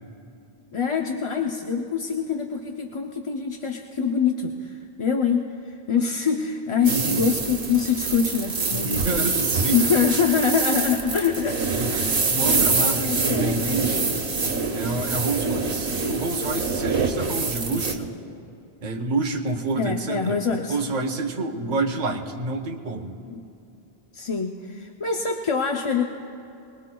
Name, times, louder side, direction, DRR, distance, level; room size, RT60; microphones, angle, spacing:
voice 1, 0.7-9.2 9.7-12.4 12.8-13.8 19.8-20.8 21.6-21.8 23.2-23.4 24.1-26.0, left 6 dB, 35° left, 2 dB, 0.6 m, -25 dB
sound 1, 6.8-17.9, right 4 dB, 80° right, 1.5 m, -25 dB
voice 2, 6.9-7.4 8.7-9.8 11.7-14.2 14.7-18.1 18.8-20.4 20.7-23.2, right 3 dB, 45° right, 3 dB, 1.1 m, -28 dB
25.0 x 20.5 x 2.3 m, 2.7 s
omnidirectional pair, 1.1 m